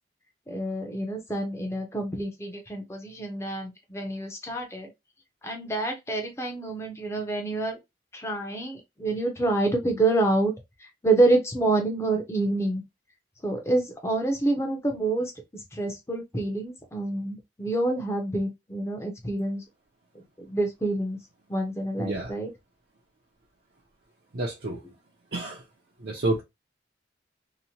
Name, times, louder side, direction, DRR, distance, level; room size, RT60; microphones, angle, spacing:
voice 1, 0.5-4.9 5.4-7.8 8.1-10.5 10.8-12.8 13.4-15.3 15.7-19.6 20.5-21.2 21.5-22.5, right 2 dB, 15° left, 0.6 m, -27 dB
voice 2, 22.0-22.3 24.3-24.8 25.3-25.6 26.0-26.4, right 2 dB, 55° right, 0.6 m, -29 dB
2.9 x 2.1 x 2.6 m
head